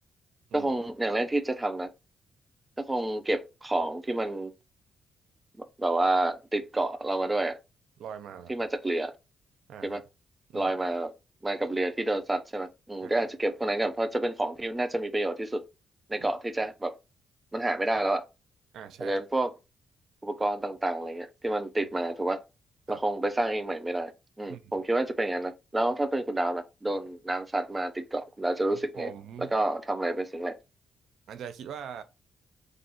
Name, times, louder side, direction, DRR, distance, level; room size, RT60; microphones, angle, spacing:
voice 1, 0.5-1.9 2.8-4.5 5.8-7.6 8.5-9.1 9.8-10.0 10.5-11.1 11.4-15.6 16.1-16.9 17.5-18.3 19.0-19.5 20.2-22.4 22.9-24.1 24.4-29.1 29.4-30.5, right 2 dB, 15° right, 0.6 m, -29 dB
voice 2, 8.0-8.6 9.7-10.0 10.5-10.7 13.0-13.1 16.2-16.3 18.7-19.2 22.9-23.0 24.5-24.8 28.7-29.5 31.3-32.0, right 8 dB, 80° right, 0.5 m, -42 dB
3.9 x 2.5 x 4.2 m
cardioid pair, 95°, 0 cm